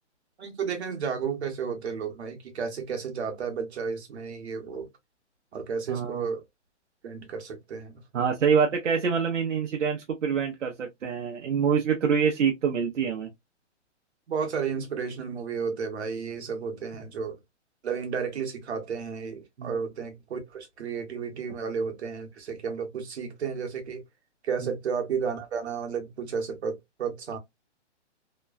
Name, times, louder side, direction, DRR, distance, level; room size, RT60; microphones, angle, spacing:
voice 1, 0.4-4.9 5.5-6.4 7.0-8.0 14.3-17.3 17.8-24.0 24.4-27.4, right 6 dB, 65° right, 1.1 m, -32 dB
voice 2, 5.9-6.3 8.1-13.3 19.6-19.8 24.6-24.7, right 6 dB, 85° right, 0.8 m, -26 dB
3.0 x 2.2 x 2.4 m
hypercardioid pair, 170°, 36 cm